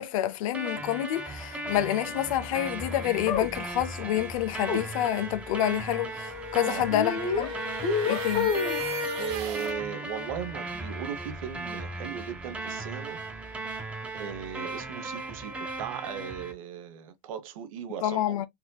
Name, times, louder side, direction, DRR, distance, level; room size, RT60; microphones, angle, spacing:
voice 1, 0.0-7.5 8.1-8.5 18.0-18.5, left 12 dB, 70° left, 0.6 m, -28 dB
sound 1, 0.5-16.5, right 2 dB, 10° right, 0.7 m, -37 dB
sound 2, 3.3-3.5 4.7-4.8 6.9-7.5 7.8-8.8, left 5 dB, 30° left, 0.7 m, -28 dB
sound 3, 6.2-9.8, left 1 dB, 50° right, 1.6 m, -34 dB
voice 2, 9.1-13.2 14.1-18.3, right 9 dB, 75° right, 0.9 m, -37 dB
4.2 x 2.7 x 2.2 m
supercardioid pair, 170°, 18 cm